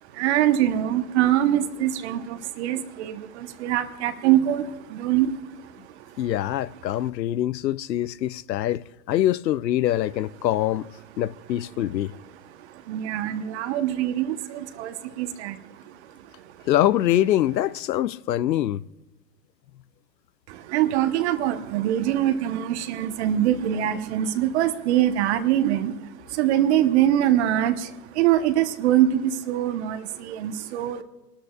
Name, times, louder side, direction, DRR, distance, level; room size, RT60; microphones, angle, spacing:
voice 1, 0.2-3.1 3.6-4.6 4.9-5.3 12.9-15.5 20.7-25.9 26.4-27.7 28.2-31.0, right 12 dB, 40° right, 1.0 m, -23 dB
voice 2, 6.2-10.9 11.2-12.1 16.6-18.8, left 13 dB, 90° left, 0.6 m, -24 dB
27.5 x 13.0 x 2.4 m
hypercardioid pair, 135°, 49 cm